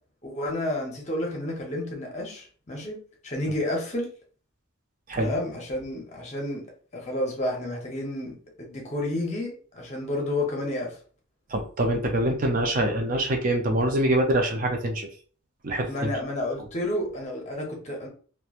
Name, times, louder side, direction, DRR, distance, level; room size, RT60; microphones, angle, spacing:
voice 1, 0.2-4.1 5.1-6.6 6.9-10.9 15.9-18.1, left 1 dB, 35° left, 0 dB, 0.8 m, -31 dB
voice 2, 11.5-15.1 15.6-16.1, right 1 dB, 40° right, 3 dB, 0.5 m, -24 dB
2.9 x 2.2 x 2.4 m, 0.42 s
head